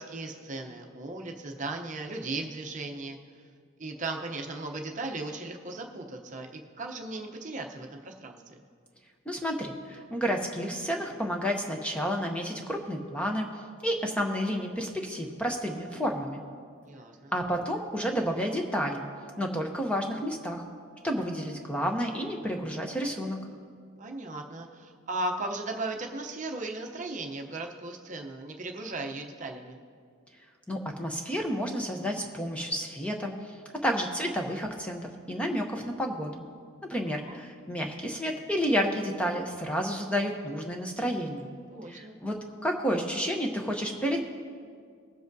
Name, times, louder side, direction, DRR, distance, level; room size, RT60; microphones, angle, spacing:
voice 1, 0.0-3.2 3.8-8.6 16.8-17.3 24.0-29.8 37.2-37.4 41.7-42.2, right 2 dB, 35° right, 2 dB, 0.7 m, -37 dB
voice 2, 9.3-13.5 13.8-16.4 17.3-19.1 19.4-20.6 21.0-23.4 30.7-33.6 33.8-36.4 36.9-41.5 41.9-44.2, equal, 5° left, 2 dB, 0.7 m, -30 dB
20.5 x 7.6 x 2.7 m, 2.2 s
head